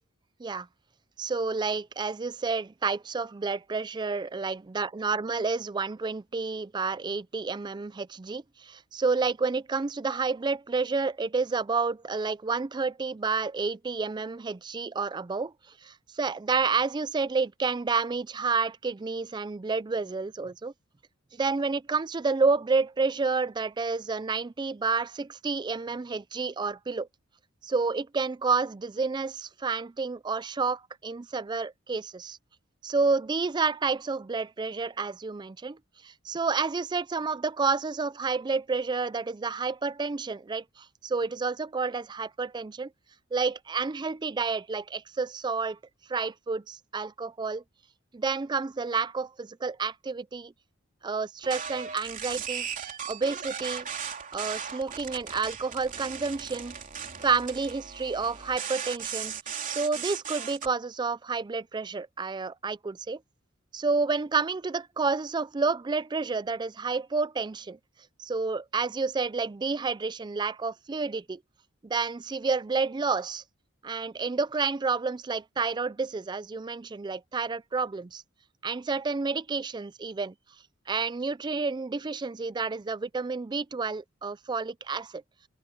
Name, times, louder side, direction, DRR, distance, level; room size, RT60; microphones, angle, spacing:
voice 1, 1.2-15.5 15.8-20.7 21.4-27.1 27.6-32.4 32.8-35.8 36.0-42.9 43.3-45.8 46.1-47.6 48.1-50.5 51.0-52.7 53.1-53.9 54.3-56.7 57.2-59.3 59.7-63.2 63.7-67.8 68.2-71.4 71.8-73.4 73.8-78.2 78.6-80.3 80.9-85.2, right 4 dB, 20° right, 0.4 m, -30 dB
sound 1, 51.4-60.7, right 7 dB, 40° right, 3.3 m, -37 dB
head